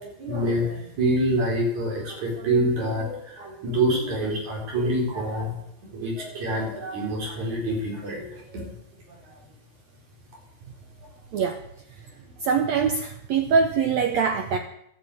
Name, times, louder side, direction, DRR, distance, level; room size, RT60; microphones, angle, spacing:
voice 1, 0.0-8.7 9.1-9.4, right 1 dB, 50° right, -1 dB, 5.5 m, -27 dB
voice 2, 12.4-14.6, right 5 dB, 85° right, 6 dB, 1.5 m, -23 dB
13.0 x 9.2 x 8.6 m, 0.74 s
omnidirectional pair, 4.4 m